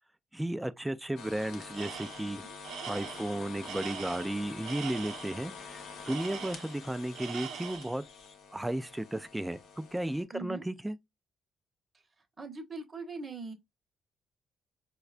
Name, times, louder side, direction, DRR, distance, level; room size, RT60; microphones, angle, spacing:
voice 1, 0.3-2.4 2.9-8.0 8.5-11.0, right 1 dB, 10° right, 0.3 m, -34 dB
sound 1, 1.2-10.2, left 5 dB, 80° left, 0.8 m, -47 dB
Tools, 1.7-2.3 2.6-5.4 6.0-6.9 7.2-8.0, right 9 dB, 80° right, 0.4 m, -42 dB
voice 2, 10.3-10.6 11.9-13.5, right 3 dB, 30° right, 0.9 m, -42 dB
4.6 x 2.2 x 2.4 m
cardioid pair, 90°, 0 cm